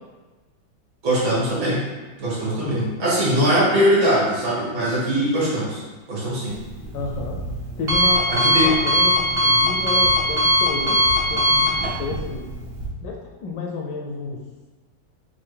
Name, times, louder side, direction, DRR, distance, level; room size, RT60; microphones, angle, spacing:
voice 1, 1.0-1.8 2.2-5.8 6.1-6.5 8.3-8.7, equal, 65° right, -7 dB, 2.2 m, -21 dB
Alarm, 6.5-12.9, equal, 50° right, 0.7 m, -21 dB
voice 2, 6.9-7.4 7.8-11.0 11.3-12.5 13.0-14.4, left 4 dB, 75° left, 0 dB, 1.1 m, -30 dB
5.6 x 2.2 x 3.3 m, 1.2 s
omnidirectional pair, 2.2 m